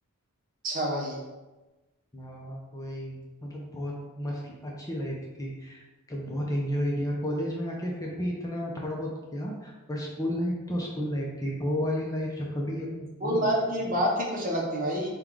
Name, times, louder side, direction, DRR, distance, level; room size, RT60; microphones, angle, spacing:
voice 1, 0.6-1.2 13.2-15.1, equal, 40° right, -2 dB, 0.8 m, -27 dB
voice 2, 2.1-13.5, equal, 15° left, -2 dB, 0.5 m, -32 dB
4.6 x 2.3 x 3.7 m, 1.1 s
head